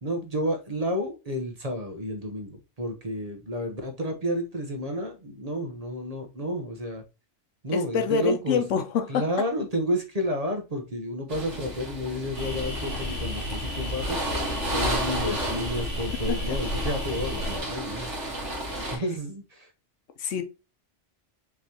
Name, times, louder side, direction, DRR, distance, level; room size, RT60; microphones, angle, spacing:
voice 1, 0.0-7.0 7.6-8.6 9.1-14.2 14.7-18.1 18.9-19.7, equal, 35° right, 0.9 m, -31 dB
voice 2, 7.7-9.2 15.2-15.4 16.3-16.4 18.6-19.0 20.2-20.4, left 6 dB, 85° left, 1.1 m, -27 dB
sound 1, 11.3-19.0, right 1 dB, 75° right, 1.9 m, -33 dB
sound 2, 12.3-17.6, left 1 dB, 25° left, 2.6 m, -32 dB
5.4 x 3.1 x 2.8 m
omnidirectional pair, 1.2 m